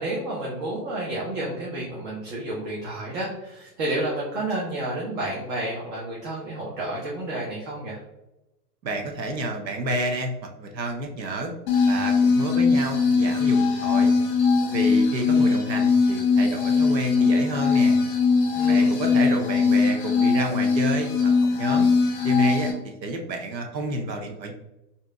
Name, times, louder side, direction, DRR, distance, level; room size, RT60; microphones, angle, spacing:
voice 1, 0.0-8.0 18.6-18.9, right 1 dB, 40° right, -4 dB, 1.2 m, -30 dB
voice 2, 8.8-10.3 10.6-11.5 11.9-14.1 14.7-18.0 18.7-21.3 21.6-21.9 22.2-22.7 23.0-24.5, right 1 dB, 90° right, 3 dB, 0.8 m, -29 dB
sound 1, 11.7-22.7, left 4 dB, 25° left, 0.9 m, -21 dB
3.4 x 2.8 x 3.5 m, 0.94 s
hypercardioid pair, 110°, 50 cm